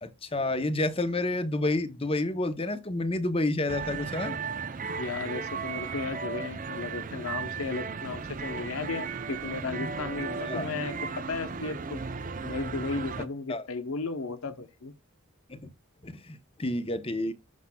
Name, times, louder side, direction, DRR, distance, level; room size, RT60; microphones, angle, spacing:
voice 1, 0.0-4.4 10.5-10.7 13.5-13.6 15.5-15.6 16.0-17.3, left 2 dB, 25° left, 0.8 m, -29 dB
sound 1, 3.7-13.3, right 5 dB, 40° right, 0.5 m, -35 dB
voice 2, 5.0-11.0 11.3-12.0 12.4-14.9, left 3 dB, 85° left, 0.9 m, -35 dB
13.5 x 5.7 x 2.3 m
head